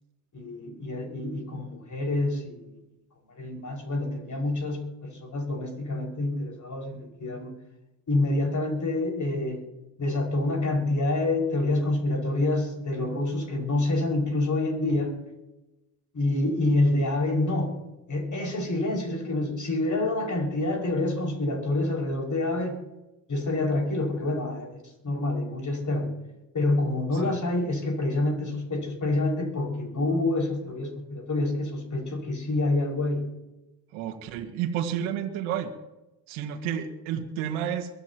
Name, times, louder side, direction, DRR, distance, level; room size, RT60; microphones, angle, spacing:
voice 1, 0.3-2.8 3.4-7.5 8.1-9.6 10.0-15.2 16.1-17.8 18.1-22.8 23.3-26.1 26.5-33.2, left 2 dB, 35° left, 2 dB, 6.0 m, -27 dB
voice 2, 33.9-35.7 36.3-37.9, right 9 dB, 75° right, 3 dB, 1.9 m, -31 dB
23.5 x 13.5 x 3.0 m, 0.96 s
hypercardioid pair, 60°, 49 cm